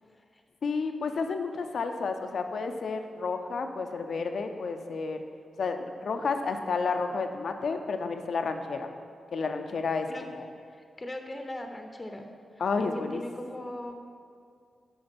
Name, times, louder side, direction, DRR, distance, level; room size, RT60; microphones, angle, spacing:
voice 1, 0.0-0.4 10.1-10.3 10.7-12.3 12.5-13.9, left 1 dB, 30° left, 5 dB, 0.7 m, -40 dB
voice 2, 0.6-5.2 5.6-8.9 9.3-10.5 12.6-13.2, left 4 dB, 70° left, 6 dB, 0.6 m, -31 dB
8.0 x 4.9 x 5.3 m, 2.3 s
cardioid pair, 55°, 0 cm